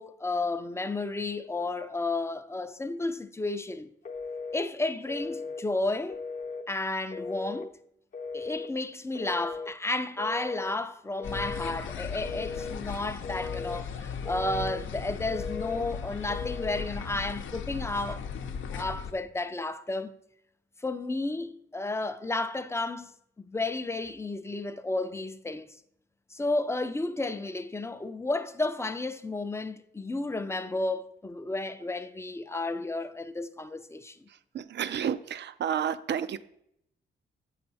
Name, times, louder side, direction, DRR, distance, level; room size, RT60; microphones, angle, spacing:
voice 1, 0.0-3.9 4.5-6.2 6.7-7.7 8.3-18.3 18.7-20.1 20.8-23.1 23.4-25.7 26.3-34.2, left 2 dB, 15° left, 0.5 m, -32 dB
Telephone, 4.1-4.6 5.1-5.6 6.1-6.7 7.1-7.7 8.1-8.7 9.2-9.7 10.2-10.7 11.2-11.8 12.2-12.8 13.2-13.8 14.2-14.8 15.3-15.8 16.3-16.9, left 4 dB, 40° left, 0.7 m, -37 dB
sound 1, 11.2-19.1, left 6 dB, 75° left, 0.7 m, -37 dB
voice 2, 34.5-36.4, right 8 dB, 60° right, 0.5 m, -30 dB
7.6 x 5.8 x 4.1 m
cardioid pair, 95°, 20 cm